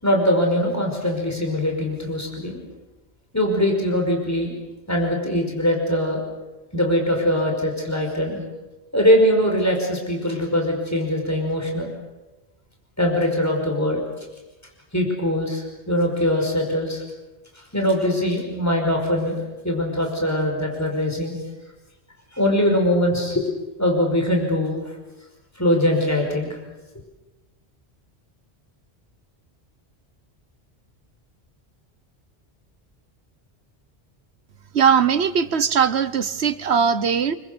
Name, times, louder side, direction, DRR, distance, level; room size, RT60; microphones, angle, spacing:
voice 1, 0.0-2.6 3.3-4.6 4.9-6.2 6.7-8.4 8.9-11.9 13.0-14.0 14.9-17.0 17.7-21.3 22.3-23.5 23.8-24.8 25.6-26.6, left 1 dB, 15° left, 1 dB, 5.4 m, -22 dB
voice 2, 34.7-37.4, right 7 dB, 80° right, 13 dB, 1.3 m, -20 dB
27.5 x 24.5 x 7.0 m, 1.1 s
omnidirectional pair, 1.1 m